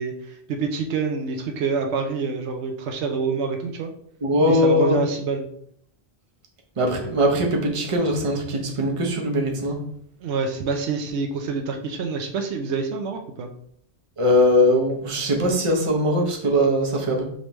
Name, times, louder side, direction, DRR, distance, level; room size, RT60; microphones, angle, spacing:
voice 1, 0.0-3.9 4.5-5.5 10.2-13.5, right 4 dB, 80° right, 4 dB, 0.9 m, -27 dB
voice 2, 4.2-5.0 6.8-9.8 14.2-17.3, left 1 dB, 30° right, 0 dB, 0.8 m, -21 dB
5.3 x 3.2 x 3.0 m, 0.68 s
omnidirectional pair, 1.1 m